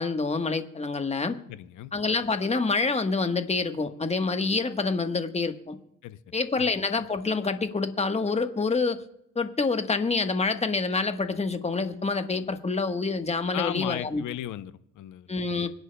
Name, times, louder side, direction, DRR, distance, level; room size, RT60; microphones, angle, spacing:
voice 1, 0.0-1.4 1.9-5.8 6.3-9.0 9.3-14.2 15.3-15.7, left 4 dB, 20° left, 7 dB, 1.3 m, -27 dB
voice 2, 1.5-1.9 6.0-6.2 6.6-6.7 13.5-15.3, left 13 dB, 80° left, 13 dB, 0.8 m, -35 dB
25.5 x 10.5 x 2.3 m, 0.78 s
cardioid pair, 90°, 30 cm